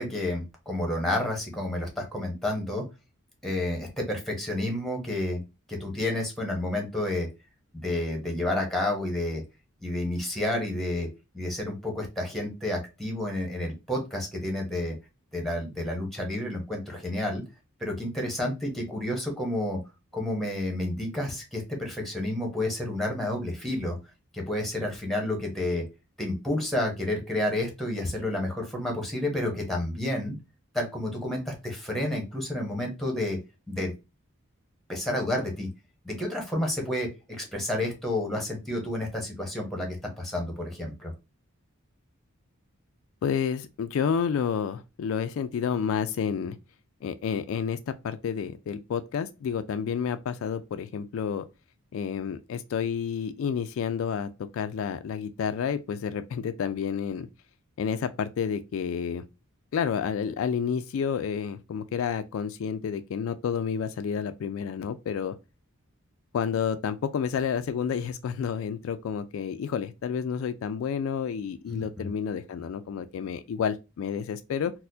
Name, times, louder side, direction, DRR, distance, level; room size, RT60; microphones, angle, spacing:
voice 1, 0.0-2.8 3.4-5.4 5.7-7.3 7.7-9.4 9.8-11.1 11.3-14.9 15.3-17.4 17.8-19.8 20.1-24.0 24.3-25.8 26.2-30.3 30.7-33.4 33.7-33.9 34.9-35.7 36.0-41.1 71.7-72.1, left 1 dB, ahead, 0.9 m, -30 dB
voice 2, 43.2-46.6 47.0-51.4 51.9-57.3 57.8-59.2 59.7-65.4 66.3-74.7, left 7 dB, 70° left, 0.3 m, -30 dB
4.2 x 2.1 x 2.6 m
head